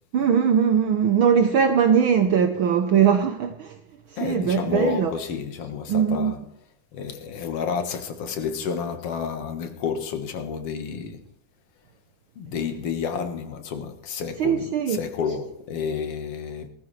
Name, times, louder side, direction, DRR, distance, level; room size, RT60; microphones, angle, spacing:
voice 1, 0.1-3.7 4.2-5.1 5.9-6.3 14.4-15.0, right 7 dB, 75° right, 1.1 m, -20 dB
voice 2, 4.2-6.4 6.9-11.2 12.4-16.7, left 6 dB, 55° left, 2.1 m, -30 dB
18.5 x 14.5 x 3.3 m
omnidirectional pair, 3.4 m